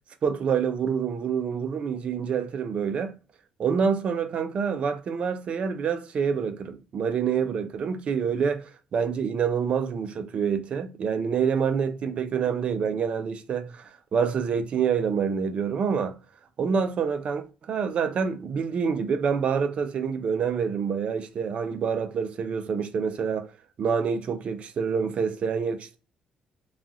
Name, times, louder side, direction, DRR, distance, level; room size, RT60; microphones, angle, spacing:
voice 1, 0.2-3.1 3.6-8.6 8.9-16.2 16.6-23.5 23.8-26.0, right 6 dB, 50° right, 0.5 m, -27 dB
3.0 x 2.4 x 2.5 m
cardioid pair, 100°, 2 cm